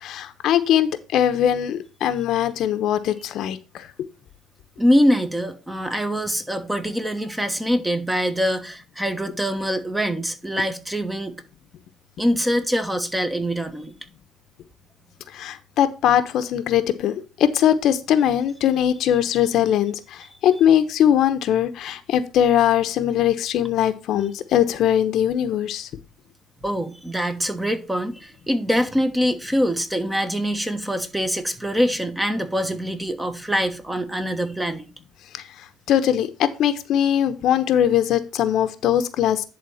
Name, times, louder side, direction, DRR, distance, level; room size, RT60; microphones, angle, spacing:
voice 1, 0.0-3.6 15.3-19.9 20.4-25.9 35.9-39.4, left 10 dB, 70° left, 1.0 m, -20 dB
voice 2, 4.8-11.4 12.2-13.9 26.6-34.9, equal, 10° right, 1.3 m, -24 dB
10.5 x 3.8 x 5.6 m
cardioid pair, 95°, 0 cm